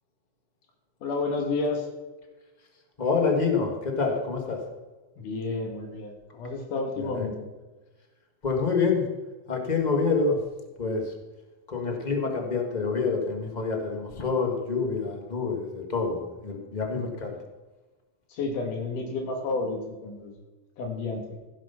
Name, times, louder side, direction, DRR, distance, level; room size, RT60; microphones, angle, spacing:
voice 1, 1.0-1.9 5.2-7.5 18.3-20.3 20.8-21.4, left 3 dB, 85° left, 2 dB, 3.2 m, -31 dB
voice 2, 3.0-4.6 7.0-7.3 8.4-9.1 9.5-10.4 10.8-11.1 11.7-17.4, left 4 dB, 25° left, 2 dB, 0.9 m, -27 dB
15.5 x 7.4 x 5.7 m, 1.2 s
omnidirectional pair, 3.6 m